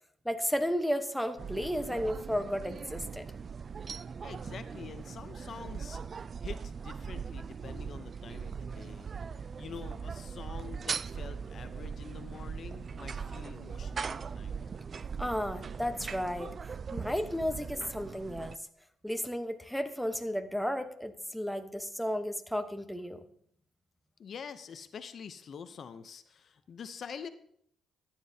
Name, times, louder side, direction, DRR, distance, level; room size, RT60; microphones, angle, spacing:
voice 1, 0.2-3.2 15.2-16.5 16.9-18.5 19.0-23.2, equal, ahead, 7 dB, 1.0 m, -33 dB
sound 1, 1.4-18.6, right 6 dB, 40° right, 0.3 m, -40 dB
voice 2, 4.2-6.0 6.4-9.1 9.6-14.5 24.2-27.3, left 6 dB, 55° left, 11 dB, 0.6 m, -46 dB
13.5 x 9.6 x 2.8 m, 0.67 s
cardioid pair, 90°, 0 cm